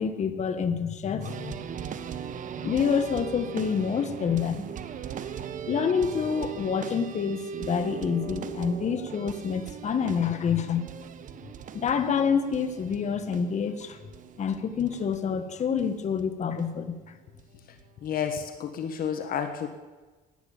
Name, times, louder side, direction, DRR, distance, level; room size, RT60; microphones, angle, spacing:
voice 1, 0.0-1.5 2.6-4.6 5.7-10.9 11.7-14.0 14.4-17.0, left 6 dB, 45° left, 9 dB, 1.5 m, -27 dB
sound 1, 1.2-15.9 16.2-16.3 16.6-16.7 17.4-17.5 17.8-18.4 19.0-19.1, right 8 dB, 50° right, 1.1 m, -39 dB
voice 2, 18.0-19.7, left 8 dB, 60° left, 7 dB, 1.4 m, -30 dB
17.0 x 11.0 x 7.3 m, 1.3 s
cardioid pair, 110°, 17 cm